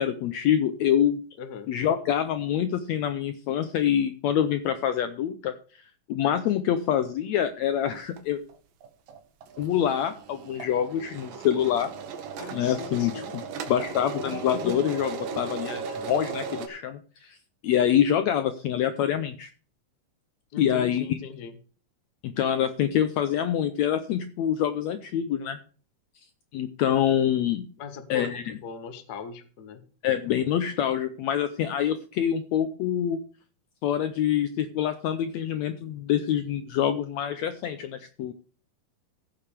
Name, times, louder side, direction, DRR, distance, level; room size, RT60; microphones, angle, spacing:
voice 1, 0.0-1.2 1.7-5.5 6.1-8.4 9.6-11.9 12.5-13.4 13.7-17.4 17.6-19.5 20.6-21.2 22.2-25.6 26.5-27.7 28.1-28.4 30.0-33.2 33.8-38.3, left 10 dB, 80° left, 10 dB, 1.6 m, -26 dB
voice 2, 1.4-1.7 12.4-13.3 20.5-21.6 27.8-29.8, left 6 dB, 60° left, 9 dB, 1.0 m, -40 dB
sound 1, 7.9-8.2 8.5-8.6 8.8-16.7, right 5 dB, 85° right, 3.1 m, -36 dB
15.5 x 6.8 x 5.0 m, 0.39 s
omnidirectional pair, 3.9 m